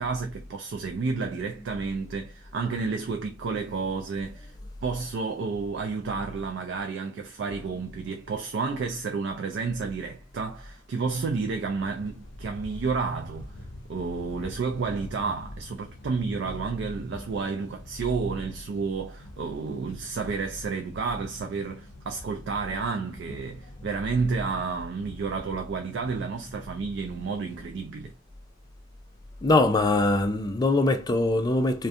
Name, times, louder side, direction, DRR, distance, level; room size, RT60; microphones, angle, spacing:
voice 1, 0.0-4.5 4.8-13.6 13.9-28.1, right 4 dB, 60° right, 0.3 m, -31 dB
sound 1, 11.6-27.7, left 1 dB, 70° left, 0.6 m, -47 dB
voice 2, 29.4-31.9, left 2 dB, 20° left, 0.3 m, -22 dB
2.4 x 2.2 x 2.5 m
head